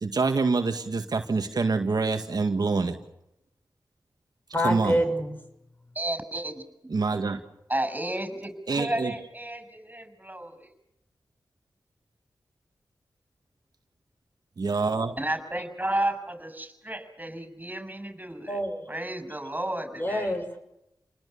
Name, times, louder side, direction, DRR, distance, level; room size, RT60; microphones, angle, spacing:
voice 1, 0.0-3.0 4.6-5.0 6.9-7.4 8.7-9.1 14.6-15.2, right 4 dB, 60° right, 6 dB, 1.9 m, -26 dB
voice 2, 4.5-5.3 18.5-18.9 20.0-20.6, equal, 25° left, 6 dB, 6.3 m, -26 dB
voice 3, 6.0-6.9 7.7-10.7 15.2-18.6 18.9-20.4, right 1 dB, 20° right, 9 dB, 6.9 m, -32 dB
29.5 x 20.0 x 7.0 m, 0.85 s
cardioid pair, 40°, 7 cm